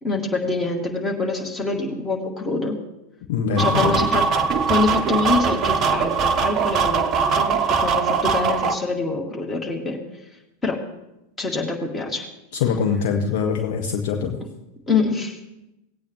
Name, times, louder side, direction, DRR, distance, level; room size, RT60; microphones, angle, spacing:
voice 1, 0.0-2.7 3.6-4.2 4.7-10.0 10.6-10.8 11.4-12.3 14.4-14.5 14.9-15.4, left 3 dB, 15° left, 0 dB, 2.2 m, -25 dB
voice 2, 3.3-4.0 12.5-14.4, left 6 dB, 50° left, 3 dB, 1.1 m, -23 dB
sound 1, 3.6-8.7, right 6 dB, 30° right, 0.7 m, -21 dB
18.5 x 8.7 x 3.1 m, 0.91 s
figure-of-eight pair, 90°, 0 cm